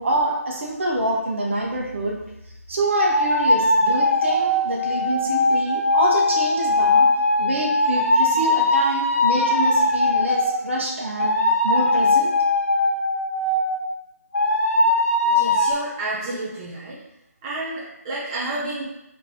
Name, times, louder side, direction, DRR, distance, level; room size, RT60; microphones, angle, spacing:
voice 1, 0.0-2.2 2.7-7.1 7.4-11.3 11.6-12.3, right 1 dB, 50° right, -2 dB, 1.0 m, -26 dB
sound 1, 2.9-10.6 11.2-13.9 14.3-15.7, left 2 dB, 75° left, 1.1 m, -20 dB
voice 2, 15.3-17.0 17.4-18.8, right 2 dB, 20° right, -7 dB, 0.7 m, -30 dB
3.8 x 2.9 x 3.7 m, 0.87 s
figure-of-eight pair, 155°, 8 cm